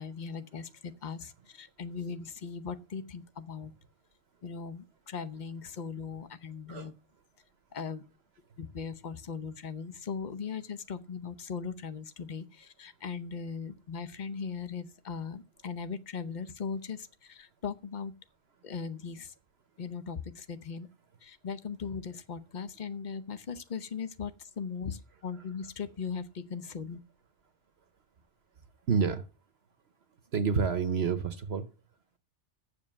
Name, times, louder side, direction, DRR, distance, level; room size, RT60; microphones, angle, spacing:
voice 1, 0.0-3.7 4.4-6.9 7.7-8.0 8.6-18.1 18.6-19.3 19.8-20.9 21.2-27.0, left 6 dB, 45° left, 0.8 m, -39 dB
voice 2, 28.9-29.3 30.3-31.7, right 5 dB, 60° right, 1.0 m, -28 dB
7.2 x 6.6 x 7.3 m
omnidirectional pair, 1.2 m